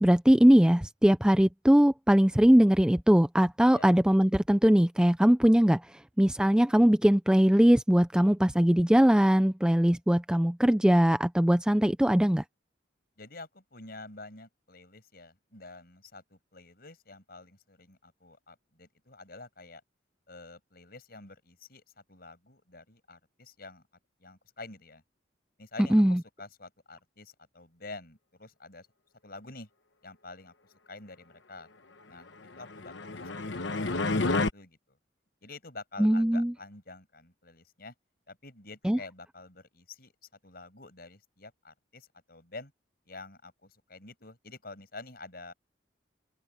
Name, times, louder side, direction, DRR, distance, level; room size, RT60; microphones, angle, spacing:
voice 1, 0.0-5.8 6.2-12.4 25.9-26.2 36.0-36.5 38.9-39.0, equal, 5° right, 0.4 m, -21 dB
voice 2, 13.2-19.8 20.3-23.9 24.2-25.0 25.6-28.9 29.2-29.7 30.0-30.5 30.9-31.7 32.1-35.0 35.4-37.9 38.3-40.1 40.4-42.7 43.0-45.5, left 3 dB, 55° left, 6.6 m, -48 dB
sound 1, 32.6-34.5, left 3 dB, 75° left, 1.1 m, -29 dB
head